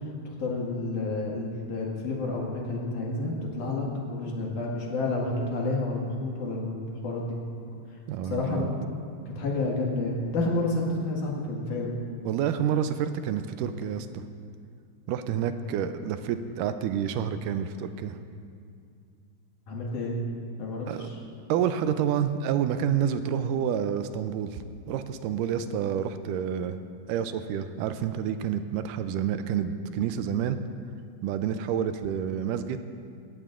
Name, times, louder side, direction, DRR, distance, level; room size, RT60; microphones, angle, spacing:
voice 1, 0.4-7.4 8.2-8.7 9.3-11.9 19.7-20.2 20.6-21.2, left 2 dB, 70° left, -2 dB, 3.2 m, -30 dB
voice 2, 8.1-8.7 12.2-14.2 15.1-18.2 20.9-21.1 21.5-26.8 27.1-30.6 31.2-32.8, right 8 dB, 85° right, 10 dB, 2.1 m, -29 dB
17.5 x 14.5 x 2.5 m, 2.3 s
omnidirectional pair, 3.7 m